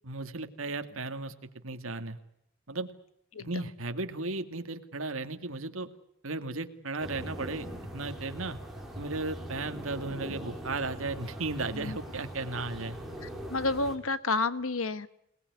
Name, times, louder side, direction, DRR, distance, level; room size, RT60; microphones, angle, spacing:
voice 1, 0.0-1.3 1.6-2.2 2.7-2.9 3.4-5.9 6.2-7.7 7.9-8.6 9.0-13.0, right 3 dB, 75° right, 7 dB, 2.2 m, -35 dB
sound 1, 7.0-14.0, equal, ahead, 4.6 m, -41 dB
voice 2, 13.5-15.1, left 3 dB, 80° left, 14 dB, 1.3 m, -30 dB
27.0 x 19.5 x 9.6 m, 0.80 s
head